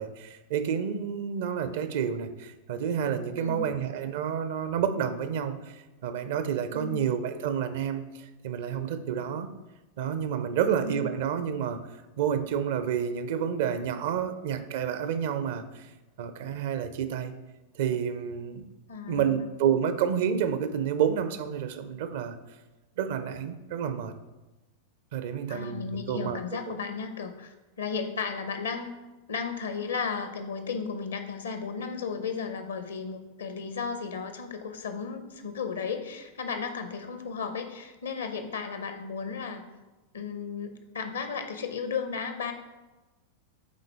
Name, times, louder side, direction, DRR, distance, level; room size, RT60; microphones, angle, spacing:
voice 1, 0.0-9.5 10.0-11.8 12.2-15.9 16.2-17.3 17.7-18.6 19.1-22.4 23.0-24.1 25.1-26.4, right 8 dB, 55° right, 11 dB, 0.5 m, -29 dB
voice 2, 3.4-3.7 6.7-7.1 10.6-11.0 18.9-19.5 25.5-28.9 29.3-39.6 40.1-42.5, left 5 dB, 70° left, 8 dB, 0.7 m, -34 dB
9.0 x 3.8 x 3.4 m, 1.1 s
figure-of-eight pair, 90°, 0 cm